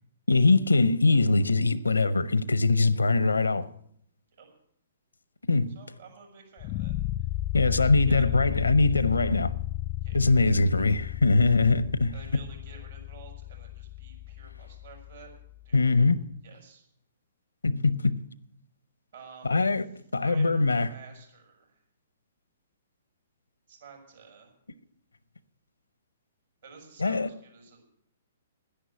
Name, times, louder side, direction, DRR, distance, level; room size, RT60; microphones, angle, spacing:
voice 1, 0.3-3.7 5.5-5.7 7.5-9.5 10.1-12.1 15.7-16.3 17.6-18.2 19.4-19.8 20.1-20.9 27.0-27.3, left 3 dB, 85° left, 0.7 m, -22 dB
voice 2, 5.7-7.3 7.7-8.2 10.0-10.6 12.1-15.3 15.6-15.8 16.4-16.8 19.1-19.6 20.2-21.8 23.7-24.5 26.6-27.9, right 5 dB, 65° right, 5.7 m, -51 dB
sound 1, 6.6-15.6, left 17 dB, 35° left, 0.4 m, -34 dB
11.0 x 10.5 x 8.3 m
figure-of-eight pair, 120°, 0 cm